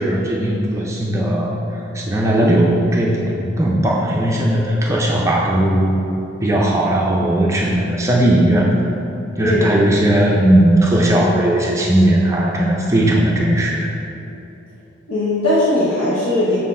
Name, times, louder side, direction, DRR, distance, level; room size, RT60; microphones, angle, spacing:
voice 1, 0.0-1.6 1.9-6.0 6.4-8.7 9.4-13.9, right 1 dB, 15° right, -3 dB, 0.4 m, -17 dB
voice 2, 9.4-9.8 15.1-16.6, left 1 dB, 90° left, -9 dB, 1.0 m, -18 dB
6.0 x 4.3 x 4.2 m, 2.8 s
head